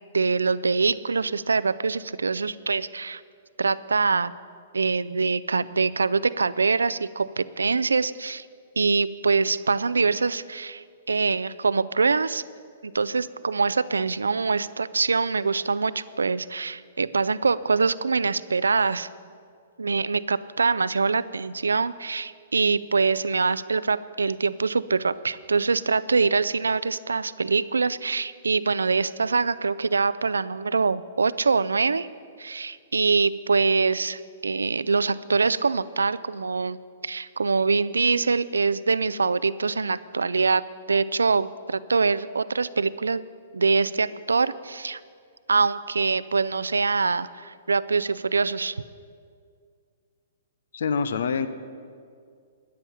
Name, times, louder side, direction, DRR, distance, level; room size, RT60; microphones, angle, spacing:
voice 1, 0.1-3.2 3.6-4.3 4.7-8.5 8.8-12.4 12.8-19.1 19.8-32.1 32.4-36.8 37.0-40.6 40.9-43.2 43.5-45.0 45.5-48.8, right 4 dB, 85° right, 17 dB, 0.4 m, -24 dB
voice 2, 50.7-51.5, left 5 dB, 65° left, 12 dB, 0.7 m, -25 dB
13.5 x 10.0 x 5.7 m, 2.2 s
hypercardioid pair, 120°, 0 cm